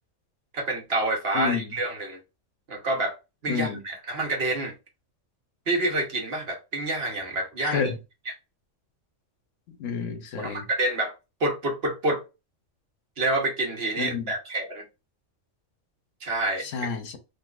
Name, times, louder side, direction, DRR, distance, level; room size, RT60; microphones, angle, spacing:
voice 1, 0.5-2.2 2.7-3.1 3.4-4.7 5.7-7.9 10.4-11.1 11.4-12.2 13.2-14.8 16.2-16.7, right 2 dB, 55° right, 1.1 m, -27 dB
voice 2, 1.3-1.7 3.5-3.8 7.6-7.9 9.7-10.7 14.0-14.3 16.6-17.2, left 6 dB, 75° left, 1.1 m, -30 dB
3.8 x 2.6 x 2.3 m
omnidirectional pair, 1.3 m